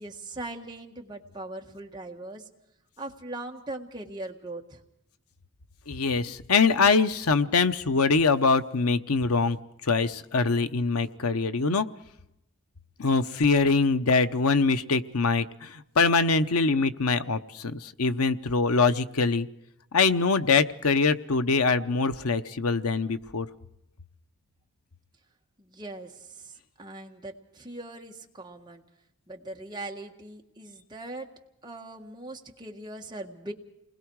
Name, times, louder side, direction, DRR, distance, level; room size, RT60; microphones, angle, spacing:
voice 1, 0.0-2.5 3.0-4.8 25.6-28.8 29.3-31.3 31.6-33.5, right 2 dB, 20° right, 1 dB, 1.6 m, -40 dB
voice 2, 5.9-9.6 9.8-11.9 13.0-19.5 19.9-23.5, left 4 dB, 90° left, 11 dB, 0.9 m, -23 dB
28.5 x 20.5 x 4.8 m, 0.85 s
head